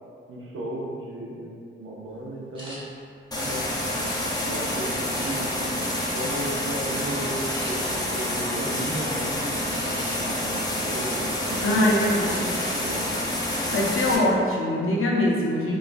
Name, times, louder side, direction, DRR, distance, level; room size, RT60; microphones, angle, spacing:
voice 1, 0.3-2.8 3.4-3.6 4.5-5.6 6.1-13.1, right 1 dB, 85° right, -3 dB, 0.5 m, -35 dB
sound 1, 2.5-2.8 3.4-4.4 5.1-5.7 6.3-6.5 6.8-7.0 7.5-7.7 9.7-10.4 10.9-11.6 12.2-12.8 13.1-13.3 13.7-14.1, equal, 25° right, 0.7 m, -43 dB
sound 2, 3.3-14.2, left 1 dB, 20° left, 0.4 m, -28 dB
voice 2, 11.6-12.5 13.7-15.8, left 1 dB, 80° left, -3 dB, 0.5 m, -23 dB
3.1 x 2.3 x 2.4 m, 2.3 s
wide cardioid pair, 140°, 21 cm